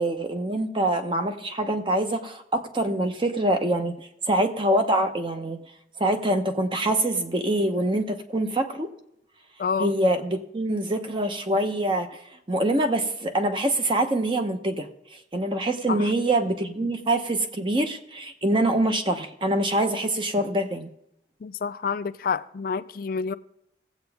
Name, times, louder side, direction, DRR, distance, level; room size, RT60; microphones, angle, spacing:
voice 1, 0.0-5.6 6.0-8.9 9.8-20.9, right 1 dB, 30° right, 0.9 m, -25 dB
voice 2, 9.6-9.9 15.9-16.1 21.4-23.3, left 5 dB, 50° left, 0.4 m, -28 dB
18.0 x 7.9 x 3.5 m
head